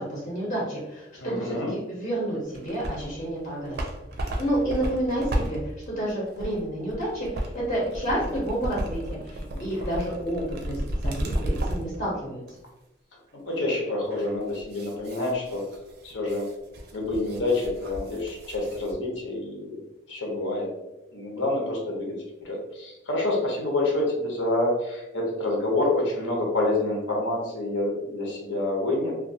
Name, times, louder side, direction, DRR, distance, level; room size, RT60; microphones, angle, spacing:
voice 1, 0.0-3.8 4.2-12.4, right 1 dB, 40° left, -6 dB, 0.6 m, -30 dB
voice 2, 1.2-1.7 9.5-9.9 13.5-15.7 16.0-16.5 16.9-19.8 20.1-20.7 21.1-22.2 22.4-29.1, left 2 dB, 90° left, -1 dB, 0.8 m, -27 dB
sound 1, 2.5-3.2 3.5-12.0 12.5-12.6 14.1-18.9, right 1 dB, 60° right, 0.4 m, -33 dB
2.3 x 2.2 x 2.6 m, 0.96 s
head